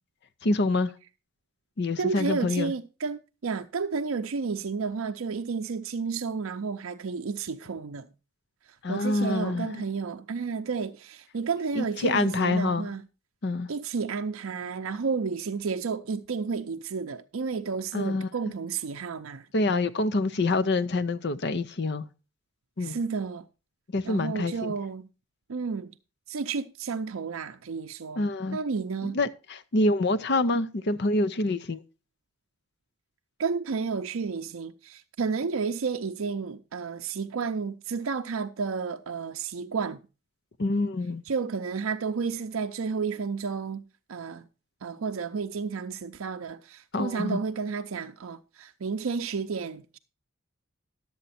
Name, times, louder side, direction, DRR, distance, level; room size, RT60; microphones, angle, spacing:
voice 1, 0.4-0.9 1.8-2.7 8.8-9.8 11.8-12.9 13.4-13.7 17.9-18.3 19.5-22.0 22.8-23.0 23.9-24.7 28.2-28.6 29.0-31.8 40.6-41.2 46.9-47.4, left 2 dB, 50° left, 0.6 m, -26 dB
voice 2, 2.0-8.1 8.9-13.0 13.7-19.5 22.8-23.5 24.0-25.1 25.5-25.9 26.3-29.2 33.4-40.0 41.3-43.8 44.1-44.5 44.8-50.0, right 5 dB, 75° right, 0.5 m, -31 dB
11.5 x 7.8 x 4.1 m
head